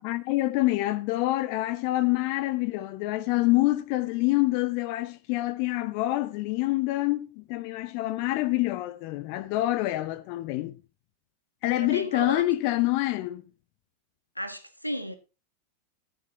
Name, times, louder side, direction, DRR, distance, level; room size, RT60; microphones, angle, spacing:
voice 1, 0.0-10.8 11.6-13.4, left 18 dB, 45° left, 0.8 m, -26 dB
voice 2, 11.8-12.4 14.3-15.2, equal, 90° left, 1.5 m, -34 dB
14.0 x 10.5 x 3.0 m
figure-of-eight pair, 90°, 0 cm